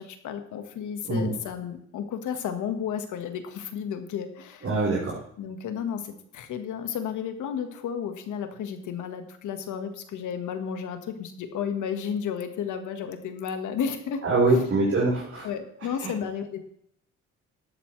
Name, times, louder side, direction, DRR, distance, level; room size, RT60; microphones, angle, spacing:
voice 1, 0.0-4.7 5.4-14.9 15.4-16.6, left 7 dB, 80° left, 7 dB, 1.6 m, -33 dB
voice 2, 4.6-5.2 14.2-15.5 16.0-16.1, right 3 dB, 50° right, -7 dB, 4.4 m, -23 dB
13.0 x 11.0 x 3.3 m, 0.70 s
cardioid pair, 90°, 30 cm